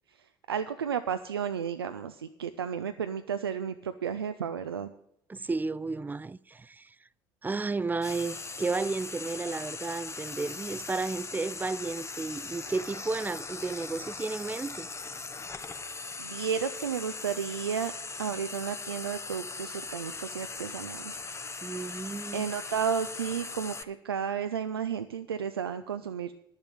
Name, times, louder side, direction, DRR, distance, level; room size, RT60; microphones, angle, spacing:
voice 1, 0.5-4.9 16.2-17.9 18.2-21.2 22.3-26.3, right 7 dB, 90° right, 0.4 m, -32 dB
voice 2, 5.3-6.9 7.4-14.9 21.6-22.5, right 3 dB, 15° right, 0.4 m, -33 dB
Frying (food), 8.0-23.8, left 4 dB, 20° left, 0.9 m, -40 dB
10.5 x 7.2 x 9.0 m
hypercardioid pair, 55°, 12 cm